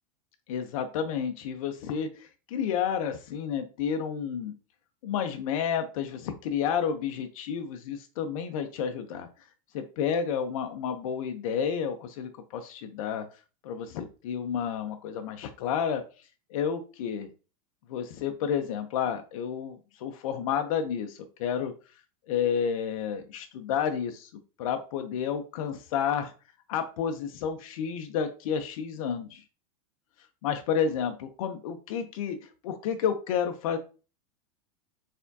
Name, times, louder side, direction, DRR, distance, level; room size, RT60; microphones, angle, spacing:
voice 1, 0.5-4.5 5.0-9.3 9.7-13.2 13.6-16.0 16.5-17.3 17.9-21.7 22.3-24.3 24.6-26.3 26.7-29.4 30.4-33.8, left 7 dB, 70° left, 6 dB, 0.6 m, -30 dB
4.2 x 3.5 x 2.7 m, 0.34 s
supercardioid pair, 135°, 18 cm